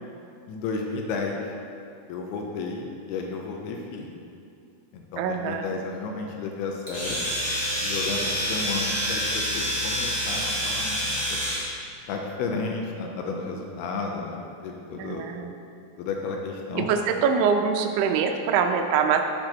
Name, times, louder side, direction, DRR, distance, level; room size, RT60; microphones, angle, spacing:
voice 1, 0.5-1.5 2.1-4.1 4.9-7.2 7.8-11.4 12.1-15.3 16.0-16.9, left 4 dB, 85° left, 1 dB, 2.7 m, -32 dB
voice 2, 5.2-5.7 14.9-15.5 16.7-19.2, right 6 dB, 80° right, 4 dB, 2.1 m, -24 dB
Domestic sounds home sounds, 6.9-11.7, equal, 30° left, 1.5 m, -27 dB
12.0 x 6.7 x 3.0 m, 2.6 s
omnidirectional pair, 4.5 m